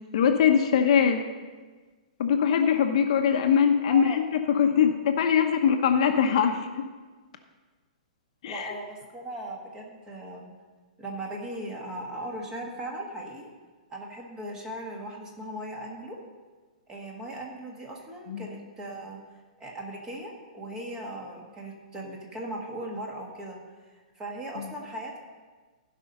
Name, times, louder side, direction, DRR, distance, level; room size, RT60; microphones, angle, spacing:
voice 1, 0.1-1.2 2.2-6.7 8.4-8.7 18.3-18.5 24.6-24.7, left 7 dB, 50° left, 5 dB, 0.9 m, -22 dB
voice 2, 3.8-4.2 8.4-10.5 11.0-13.5 13.9-16.2 16.9-19.2 19.6-23.6 24.1-25.2, right 1 dB, 15° right, 0 dB, 1.5 m, -38 dB
15.5 x 5.4 x 5.4 m, 1.4 s
hypercardioid pair, 165°, 4 cm